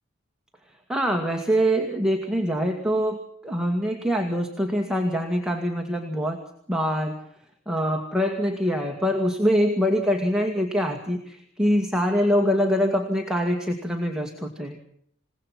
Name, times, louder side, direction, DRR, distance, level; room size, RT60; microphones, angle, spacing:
voice 1, 0.9-6.4 6.7-7.2 7.7-14.8, equal, 5° right, 2 dB, 2.2 m, -24 dB
28.5 x 18.0 x 5.9 m, 0.67 s
head